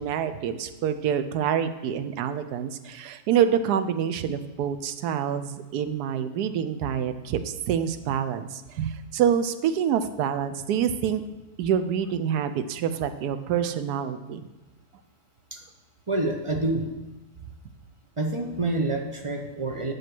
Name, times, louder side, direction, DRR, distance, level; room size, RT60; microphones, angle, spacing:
voice 1, 0.0-11.2 11.6-14.4, right 8 dB, 90° right, 10 dB, 1.2 m, -26 dB
voice 2, 16.1-16.9 18.2-19.9, right 2 dB, 35° right, 2 dB, 0.5 m, -27 dB
7.9 x 5.3 x 6.0 m, 1.1 s
omnidirectional pair, 1.6 m